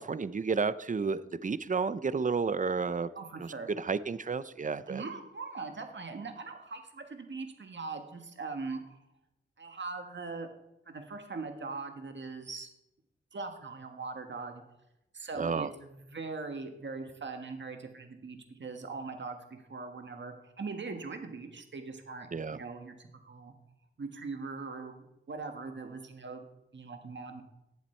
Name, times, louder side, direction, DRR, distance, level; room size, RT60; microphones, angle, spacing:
voice 1, 0.0-3.1 3.4-3.5 3.8-5.0 15.4-15.7 22.3-22.6, right 5 dB, 40° right, 15 dB, 0.6 m, -31 dB
voice 2, 3.1-3.7 4.9-9.0 9.6-10.5 10.9-12.7 13.3-14.6 15.1-23.5 24.0-26.4 26.7-27.4, right 4 dB, 60° right, 5 dB, 1.6 m, -41 dB
18.5 x 7.3 x 4.4 m, 0.90 s
wide cardioid pair, 75°, 21 cm